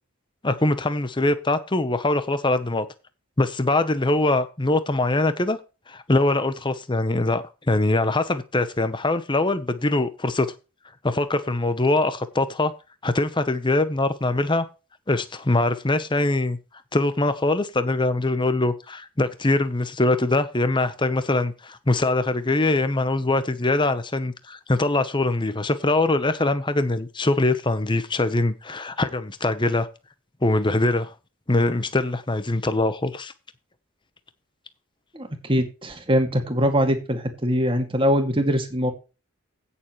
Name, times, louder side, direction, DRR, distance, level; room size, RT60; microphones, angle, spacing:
voice 1, 0.4-2.8 3.4-5.6 5.9-10.5 11.0-12.7 13.0-14.7 15.1-16.6 16.9-29.9 30.4-31.1 31.5-33.3, left 2 dB, 20° left, 0.9 m, -23 dB
voice 2, 35.1-38.9, equal, 25° right, 2.2 m, -22 dB
16.5 x 6.9 x 3.1 m
head